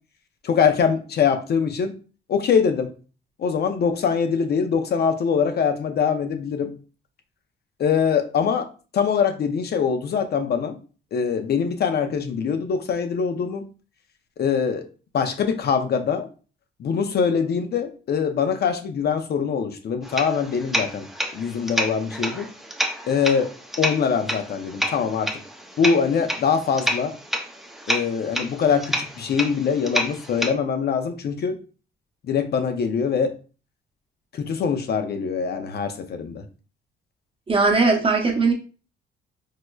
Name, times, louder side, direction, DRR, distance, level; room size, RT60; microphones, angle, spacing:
voice 1, 0.4-1.9 2.3-2.9 3.4-6.7 7.8-8.7 8.9-10.8 11.1-13.6 14.4-14.9 15.1-16.3 16.8-21.0 21.3-22.5 23.1-23.5 23.8-25.3 25.8-27.1 27.9-31.6 32.3-33.3 34.3-36.4, left 6 dB, 55° left, 7 dB, 0.6 m, -23 dB
sound 1, 20.0-30.5, equal, ahead, 0.5 m, -29 dB
voice 2, 37.5-38.5, right 3 dB, 25° right, 2 dB, 0.8 m, -19 dB
4.6 x 2.0 x 2.3 m, 0.36 s
cardioid pair, 90°, 20 cm